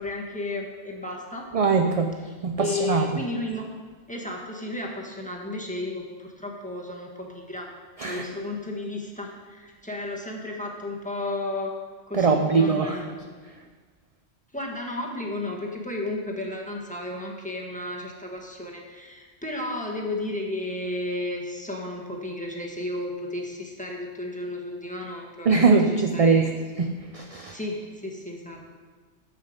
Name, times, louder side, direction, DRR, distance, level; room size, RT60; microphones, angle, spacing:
voice 1, 0.0-1.5 2.6-3.7 4.1-11.7 12.1-13.2 14.5-26.5 27.5-28.7, left 2 dB, 5° left, -2 dB, 1.4 m, -33 dB
voice 2, 1.5-2.1 2.4-3.0 8.0-8.2 12.1-13.0 25.5-26.5 26.8-27.6, right 4 dB, 45° right, 4 dB, 0.4 m, -21 dB
11.0 x 7.8 x 5.1 m, 1.5 s
omnidirectional pair, 1.2 m